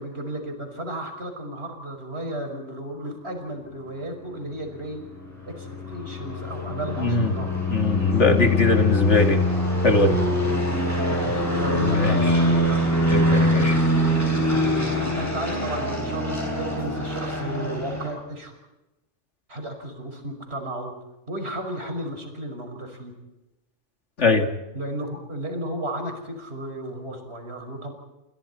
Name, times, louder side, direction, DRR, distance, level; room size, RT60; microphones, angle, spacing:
voice 1, 0.0-5.0 5.5-7.5 10.9-12.8 13.5-13.7 14.3-18.5 19.5-20.9 21.3-23.1 24.7-27.9, right 1 dB, 60° right, 4 dB, 5.8 m, -34 dB
sound 1, 4.8-18.1, left 1 dB, 15° left, 8.0 m, -23 dB
voice 2, 6.8-7.3 7.7-9.4 9.8-10.2 11.2-11.3 11.8-12.4 13.0-13.7 24.2-24.5, left 2 dB, 80° left, 5 dB, 2.6 m, -21 dB
29.0 x 27.5 x 4.3 m, 1.0 s
omnidirectional pair, 1.2 m